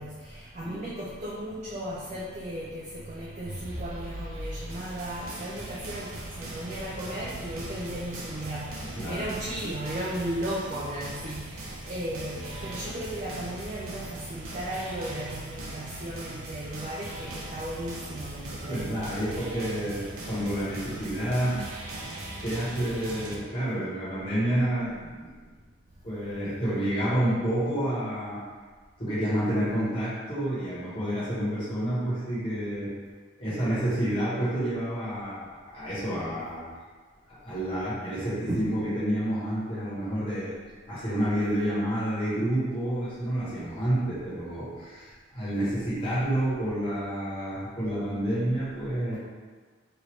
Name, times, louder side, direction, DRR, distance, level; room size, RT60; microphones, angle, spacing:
voice 1, 0.0-19.0 38.5-38.7, right 1 dB, 35° right, -6 dB, 0.3 m, -35 dB
sound 1, 3.4-23.4, right 1 dB, 80° right, 0.6 m, -40 dB
voice 2, 8.8-9.2 18.6-21.6 22.4-25.3 26.0-28.4 29.0-32.9 33.4-36.6 37.3-40.6 40.9-49.2, right 1 dB, 25° left, -10 dB, 1.1 m, -29 dB
2.9 x 2.5 x 3.1 m, 1.5 s
head